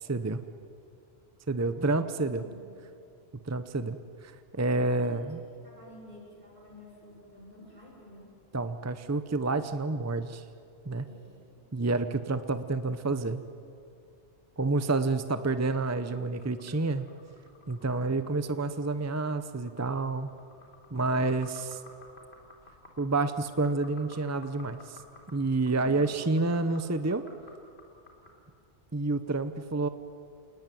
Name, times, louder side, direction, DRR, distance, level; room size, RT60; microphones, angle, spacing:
voice 1, 0.1-0.4 1.5-2.4 3.4-5.4 8.5-10.4 10.9-11.1 11.7-13.4 14.6-17.0 17.7-20.3 20.9-21.8 23.0-25.0 25.3-27.2 28.9-29.9, right 3 dB, 15° right, 10 dB, 0.7 m, -29 dB
voice 2, 1.5-2.0 2.2-2.7 4.6-5.2 5.5-8.3 11.1-11.7 25.6-26.3 26.6-26.7, left 1 dB, 55° right, -3 dB, 6.8 m, -51 dB
sound 1, 16.0-28.4, left 3 dB, 70° left, 3.9 m, -54 dB
28.0 x 20.0 x 9.3 m, 2.4 s
omnidirectional pair, 1.1 m